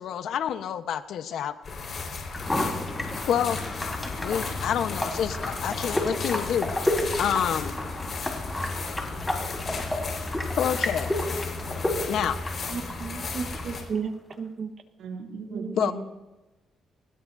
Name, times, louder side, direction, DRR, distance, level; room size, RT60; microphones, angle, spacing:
voice 1, 0.0-1.5 3.3-3.7 4.2-6.7 7.2-7.7 10.6-11.1 12.1-12.4 15.8-15.9, left 9 dB, 75° left, 9 dB, 1.0 m, -27 dB
sound 1, 1.6-13.8, left 4 dB, 45° left, 4.9 m, -34 dB
sound 2, 2.3-14.3, left 1 dB, 10° left, 4.2 m, -32 dB
voice 2, 12.7-14.7 15.5-15.8, right 5 dB, 55° right, 9 dB, 1.2 m, -34 dB
voice 3, 15.0-15.9, right 5 dB, 80° right, 0 dB, 2.8 m, -37 dB
22.5 x 20.0 x 2.7 m, 1.1 s
cardioid pair, 90°, 0 cm